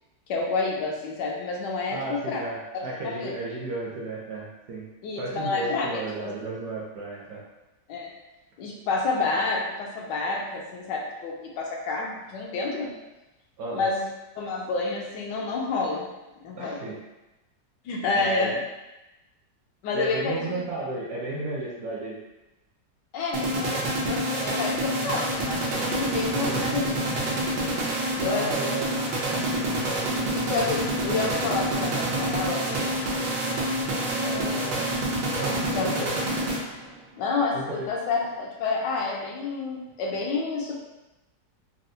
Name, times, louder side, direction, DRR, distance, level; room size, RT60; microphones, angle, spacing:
voice 1, 0.3-2.4 2.7-3.3 5.0-5.9 6.2-6.3 7.9-8.1 8.6-12.9 13.7-14.1 14.4-16.1 16.4-16.8 17.8-18.6 19.8-20.6 23.1-27.3 28.2-28.7 30.2-32.9 35.7-35.9 37.2-40.7, left 3 dB, 80° left, -2 dB, 1.3 m, -29 dB
voice 2, 1.9-4.9 5.2-7.4 13.6-13.9 16.6-17.0 18.1-18.5 19.9-22.2 26.5-26.6 28.2-29.0 34.2-34.9 35.3-36.1 37.5-37.9, right 2 dB, 65° right, -4 dB, 0.9 m, -33 dB
sound 1, 23.3-37.0, right 1 dB, 85° right, 1.4 m, -27 dB
4.2 x 2.0 x 2.6 m, 1.0 s
omnidirectional pair, 1.9 m